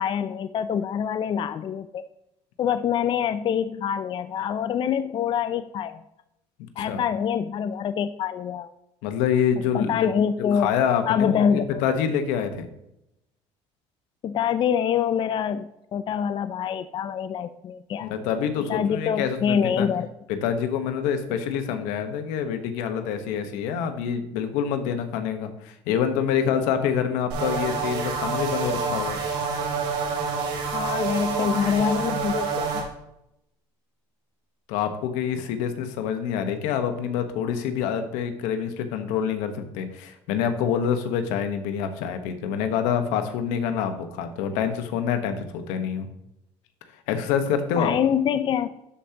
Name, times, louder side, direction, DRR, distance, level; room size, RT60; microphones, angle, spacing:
voice 1, 0.0-2.1 2.6-6.0 6.8-8.7 9.7-10.7 11.1-11.8 14.2-18.1 18.7-20.1 30.7-32.9 47.8-48.7, left 8 dB, 40° left, 12 dB, 0.4 m, -25 dB
voice 2, 9.0-10.1 10.5-12.7 18.0-19.9 20.3-29.2 34.7-46.1 47.1-47.9, left 8 dB, 85° left, 8 dB, 1.2 m, -26 dB
sound 1, 27.3-32.8, right 5 dB, 90° right, 3.1 m, -27 dB
12.5 x 5.0 x 2.9 m, 0.84 s
cardioid pair, 110°, 13 cm